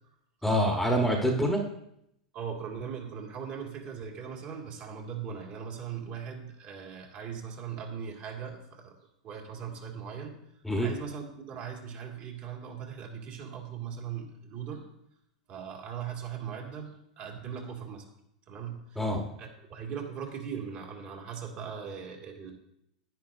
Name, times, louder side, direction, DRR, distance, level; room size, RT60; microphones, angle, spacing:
voice 1, 0.4-1.6 10.6-10.9 19.0-19.2, equal, 5° left, 2 dB, 1.2 m, -26 dB
voice 2, 2.3-9.0 9.2-10.4 10.8-14.9 15.5-18.1 18.5-19.0 19.4-22.5, right 7 dB, 45° right, 0 dB, 2.2 m, -39 dB
10.5 x 9.6 x 2.6 m, 0.78 s
hypercardioid pair, 95°, 4 cm